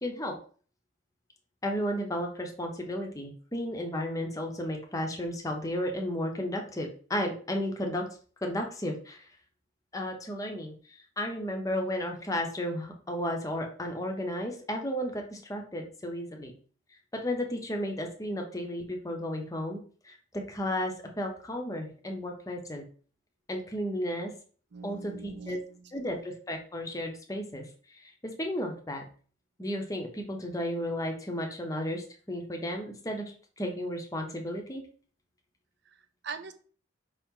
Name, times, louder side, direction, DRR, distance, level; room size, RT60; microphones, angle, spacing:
voice 1, 0.0-0.3 1.6-8.0 8.4-9.2 9.9-10.7 11.2-16.5 17.1-19.8 20.0-22.8 23.5-24.3 24.8-25.6 25.9-27.6 28.0-29.0 29.6-33.3 33.6-34.8, equal, 15° left, 2 dB, 0.7 m, -33 dB
voice 2, 24.7-26.1 35.9-36.5, right 4 dB, 60° right, 9 dB, 0.5 m, -42 dB
4.9 x 2.9 x 3.6 m, 0.42 s
head